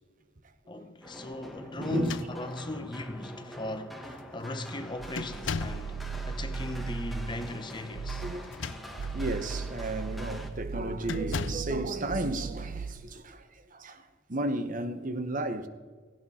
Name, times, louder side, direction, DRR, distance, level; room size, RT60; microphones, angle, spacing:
voice 1, 0.7-8.3, left 2 dB, 20° left, 0.9 m, -38 dB
sound 1, 1.0-10.5, equal, ahead, 1.2 m, -45 dB
voice 2, 1.8-2.2 8.2-8.6 9.1-15.7, right 2 dB, 40° right, 0.9 m, -33 dB
sound 2, 1.9-2.8 3.7-3.8 4.1-4.5 5.2-5.9 8.3-9.2 9.7-10.0 11.1-11.8, left 5 dB, 65° left, 0.5 m, -37 dB
sound 3, 4.9-7.6 7.9-8.4 8.9-13.1, right 5 dB, 85° right, 0.5 m, -37 dB
17.0 x 16.0 x 4.2 m
head